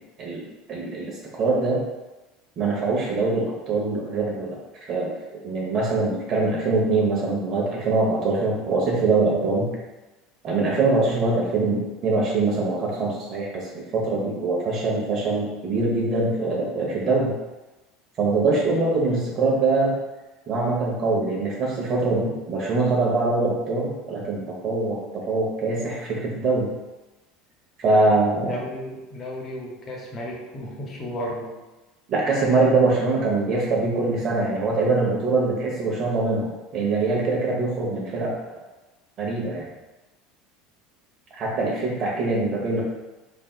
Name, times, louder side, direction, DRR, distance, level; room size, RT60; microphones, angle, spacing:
voice 1, 0.2-1.8 2.6-5.1 5.4-9.7 10.4-17.3 18.2-19.9 20.5-26.7 27.8-28.5 32.1-38.3 39.2-39.6 41.3-42.8, right 3 dB, 45° right, -3 dB, 0.8 m, -23 dB
voice 2, 28.4-31.6, equal, 35° left, -2 dB, 0.7 m, -33 dB
2.6 x 2.2 x 2.2 m, 1.1 s
hypercardioid pair, 70°, 0 cm